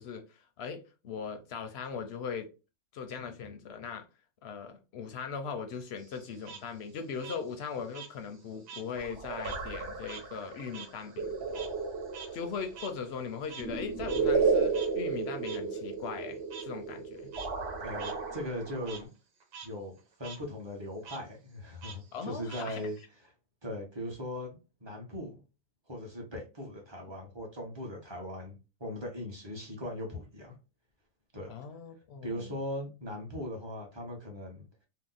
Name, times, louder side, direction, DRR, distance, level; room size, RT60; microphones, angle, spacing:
voice 1, 0.0-2.5 2.9-4.0 4.4-11.3 12.3-17.3 22.1-22.8 31.5-32.5, left 6 dB, 65° left, 0.7 m, -39 dB
Frog, 6.0-8.9 9.2-13.8 14.1-14.2 14.7-14.9 15.4-15.6 16.5-16.6 17.2-17.5 18.0-18.1 18.5-19.0 19.4-19.7 20.0-20.4 21.0-21.2 21.8-23.0, right 6 dB, 85° right, 1.3 m, -47 dB
sound 1, 9.0-19.0, right 4 dB, 60° right, 1.1 m, -33 dB
voice 2, 17.8-19.1 19.6-23.0 23.6-25.4 25.9-30.6 31.3-31.5 32.2-34.7, left 1 dB, 25° right, 0.7 m, -39 dB
2.8 x 2.0 x 3.8 m
omnidirectional pair, 1.3 m